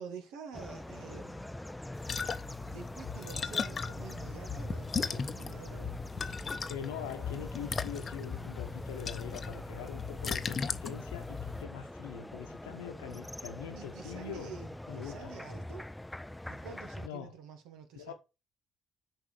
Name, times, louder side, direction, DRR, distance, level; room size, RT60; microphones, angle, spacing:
voice 1, 0.0-1.6 2.7-6.0 13.7-15.9 16.5-18.1, right 6 dB, 70° right, 1.4 m, -48 dB
sound 1, 0.5-17.1, left 1 dB, 10° left, 0.5 m, -44 dB
sound 2, 1.9-11.6, left 5 dB, 45° left, 0.8 m, -37 dB
voice 2, 6.7-14.5 14.9-15.3 17.0-17.3 17.9-18.1, left 8 dB, 80° left, 1.0 m, -43 dB
6.2 x 4.8 x 5.0 m
figure-of-eight pair, 45°, 0 cm